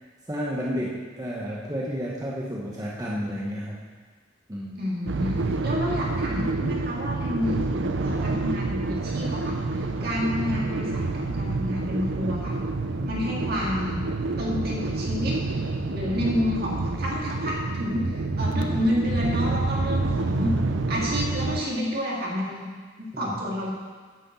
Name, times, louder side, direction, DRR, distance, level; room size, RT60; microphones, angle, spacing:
voice 1, 0.3-3.8 4.5-4.8 10.0-10.2 13.0-13.2 20.0-20.9 23.1-23.4, equal, 20° right, -5 dB, 1.1 m, -32 dB
voice 2, 4.8-12.6 13.0-14.0 14.4-15.4 15.9-20.6 20.9-23.7, left 1 dB, 55° right, -4 dB, 2.4 m, -29 dB
sound 1, 5.1-21.6, right 3 dB, 75° right, 0.6 m, -28 dB
9.6 x 6.3 x 7.0 m, 1.5 s
head